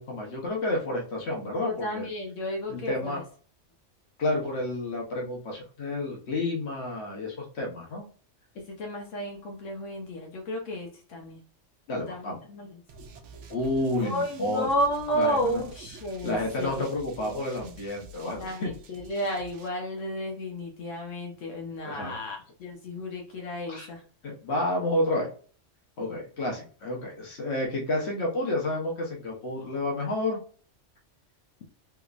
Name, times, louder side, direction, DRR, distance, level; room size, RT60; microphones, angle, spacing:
voice 1, 0.0-2.1 2.7-3.2 4.2-8.0 11.9-12.4 13.5-14.7 15.1-15.6 16.2-18.7 21.8-22.1 23.7-23.9 24.2-25.3 26.0-30.4, left 1 dB, 65° left, -1 dB, 1.3 m, -30 dB
voice 2, 1.6-3.2 8.7-11.4 12.0-12.8 14.0-16.9 17.2-17.4 18.4-24.0, equal, 90° left, 1 dB, 1.2 m, -32 dB
sound 1, 12.9-19.7, right 3 dB, 75° right, 1.0 m, -48 dB
3.5 x 3.1 x 2.4 m, 0.42 s
omnidirectional pair, 1.2 m